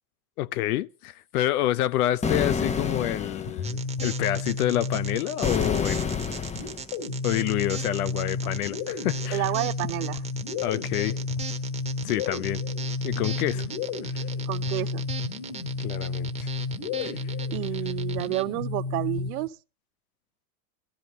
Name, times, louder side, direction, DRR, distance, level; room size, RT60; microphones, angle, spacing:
voice 1, 0.4-6.3 7.2-9.5 10.6-11.2 12.0-12.6 13.0-13.6 15.8-16.5 17.0-17.1, left 14 dB, 85° left, 0.7 m, -28 dB
sound 1, 2.2-3.6 5.4-6.9, left 5 dB, 15° left, 0.7 m, -28 dB
sound 2, 3.5-5.6 6.5-19.5, left 4 dB, 60° left, 3.0 m, -32 dB
sound 3, 3.6-18.4, right 5 dB, 15° right, 1.2 m, -39 dB
voice 2, 9.3-10.2 13.5-13.7 14.5-15.0 17.5-19.6, right 19 dB, 80° right, 0.7 m, -30 dB
18.0 x 13.0 x 4.0 m
supercardioid pair, 110°, 43 cm